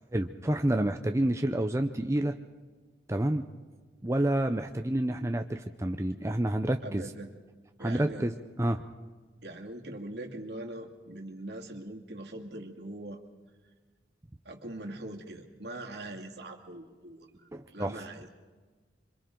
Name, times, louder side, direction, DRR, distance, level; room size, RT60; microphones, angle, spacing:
voice 1, 0.1-2.3 3.1-3.4 4.0-7.0 7.8-8.8 17.5-18.0, right 1 dB, 15° right, 6 dB, 0.6 m, -29 dB
voice 2, 6.8-7.3 7.8-8.3 9.4-13.2 14.4-18.3, right 1 dB, 70° right, 1 dB, 2.4 m, -42 dB
27.0 x 25.0 x 3.8 m, 1.4 s
head